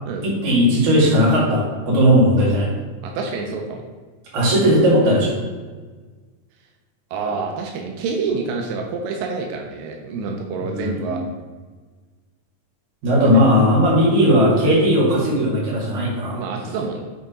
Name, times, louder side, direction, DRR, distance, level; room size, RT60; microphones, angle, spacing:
voice 1, 0.2-2.7 4.3-5.3 10.7-11.2 13.0-16.4, equal, 60° right, -6 dB, 3.4 m, -17 dB
voice 2, 3.0-3.8 7.1-11.2 13.2-13.5 16.3-17.0, right 4 dB, 90° right, 1 dB, 2.4 m, -27 dB
7.9 x 4.0 x 4.9 m, 1.4 s
omnidirectional pair, 3.9 m